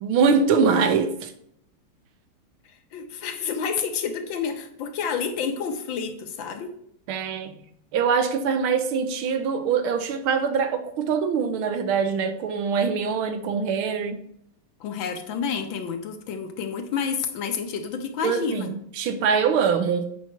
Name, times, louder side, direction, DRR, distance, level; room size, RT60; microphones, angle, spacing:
voice 1, 0.0-1.3 7.1-7.5 7.9-14.2 18.2-20.1, right 6 dB, 75° right, 1.6 m, -23 dB
voice 2, 2.7-6.7 14.8-18.7, left 6 dB, 65° left, 1.6 m, -29 dB
8.5 x 5.7 x 4.5 m
omnidirectional pair, 2.4 m